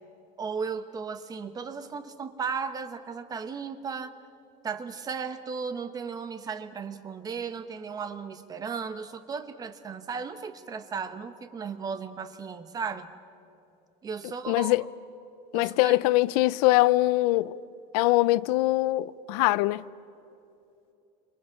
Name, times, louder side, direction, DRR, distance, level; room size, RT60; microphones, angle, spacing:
voice 1, 0.4-4.1 4.6-13.1 14.0-14.8 15.5-16.1, right 5 dB, 20° right, 1.0 m, -35 dB
voice 2, 14.5-14.8 15.5-17.5 17.9-19.8, left 19 dB, 85° left, 0.6 m, -23 dB
28.5 x 26.0 x 7.2 m
cardioid pair, 170°, 19 cm